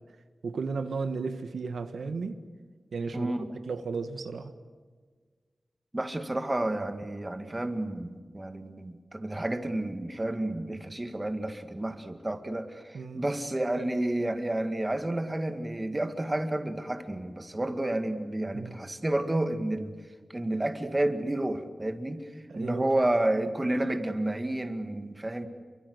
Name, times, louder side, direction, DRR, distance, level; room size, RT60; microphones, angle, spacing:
voice 1, 0.4-2.4 2.9-3.3 3.7-4.5 12.9-13.3 18.5-18.8 22.5-23.1, right 4 dB, 85° right, 8 dB, 1.6 m, -34 dB
voice 2, 3.1-3.5 5.9-20.0 20.3-25.5, right 1 dB, 20° right, 7 dB, 2.0 m, -30 dB
28.5 x 24.0 x 8.1 m, 1.5 s
wide cardioid pair, 105°, 0 cm